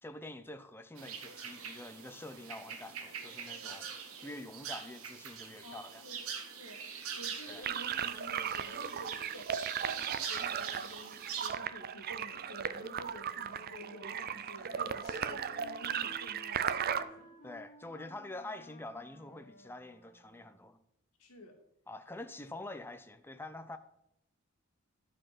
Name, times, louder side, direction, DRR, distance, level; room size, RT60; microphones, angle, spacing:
voice 1, 0.0-4.0 4.2-6.0 7.5-7.6 17.4-20.8 21.9-23.8, left 2 dB, 10° left, 0.5 m, -46 dB
sound 1, 1.0-11.5, right 7 dB, 80° right, 1.2 m, -44 dB
voice 2, 5.6-6.2 6.5-9.5 9.8-17.3 21.2-21.5, left 1 dB, 85° left, 2.1 m, -51 dB
sound 2, 7.6-17.0, right 8 dB, 45° right, 0.4 m, -37 dB
Wind instrument woodwind instrument, 13.2-20.7, left 2 dB, 40° left, 1.6 m, -57 dB
11.5 x 4.3 x 5.9 m
head